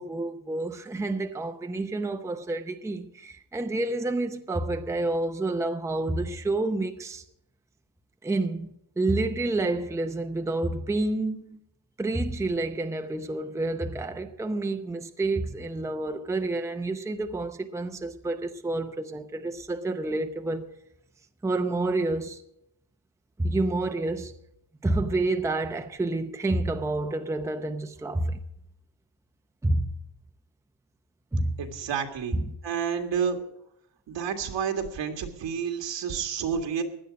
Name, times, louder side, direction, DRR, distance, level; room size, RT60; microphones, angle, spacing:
voice 1, 0.0-7.2 8.2-11.6 12.0-20.7 21.4-22.4 23.4-24.3 24.8-28.4 29.6-29.9 31.3-31.6 32.3-32.5, right 2 dB, 5° right, 0.6 m, -29 dB
voice 2, 31.6-33.4 34.1-36.8, right 7 dB, 80° right, 2.0 m, -30 dB
16.5 x 11.0 x 5.2 m
cardioid pair, 150°, 43 cm